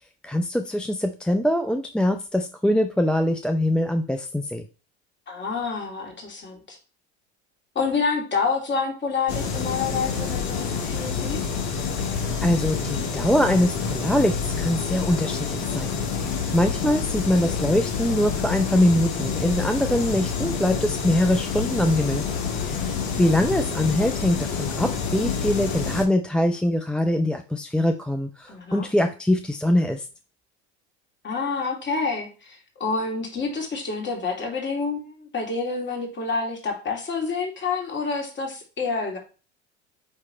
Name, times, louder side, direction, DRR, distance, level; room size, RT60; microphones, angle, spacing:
voice 1, 0.2-4.6 12.0-22.2 22.6-22.9 23.2-30.1, left 1 dB, 5° left, 6 dB, 0.5 m, -23 dB
voice 2, 5.3-6.8 7.7-11.4 28.5-28.9 31.2-39.2, left 4 dB, 30° left, 1 dB, 2.6 m, -28 dB
sound 1, 9.3-26.1, left 6 dB, 55° left, 1.8 m, -28 dB
8.8 x 3.2 x 4.3 m, 0.35 s
hypercardioid pair, 80°, 34 cm